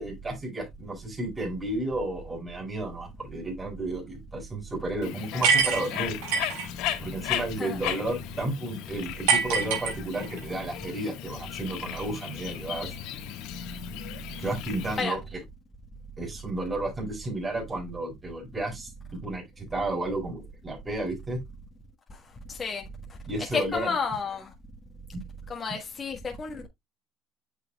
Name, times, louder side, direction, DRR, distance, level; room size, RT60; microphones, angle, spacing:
voice 1, 0.0-6.2 7.0-12.9 14.4-15.2 16.2-21.4 23.3-24.0, right 2 dB, 20° right, 4.7 m, -32 dB
Bird, 5.0-15.0, left 11 dB, 70° left, 1.5 m, -36 dB
sound 1, 5.4-6.7 9.3-10.4, right 5 dB, 80° right, 4.7 m, -24 dB
voice 2, 23.5-24.5 25.5-26.7, left 5 dB, 30° left, 1.5 m, -31 dB
8.3 x 6.8 x 2.3 m
supercardioid pair, 90°, 0 cm